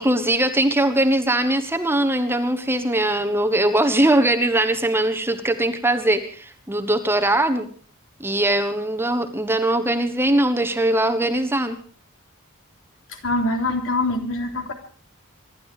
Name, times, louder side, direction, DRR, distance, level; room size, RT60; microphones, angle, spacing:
voice 1, 0.0-7.7 8.2-11.8, right 1 dB, 10° right, 7 dB, 1.3 m, -21 dB
voice 2, 13.2-14.7, left 2 dB, 65° left, 4 dB, 3.4 m, -24 dB
25.5 x 11.5 x 5.0 m, 0.43 s
head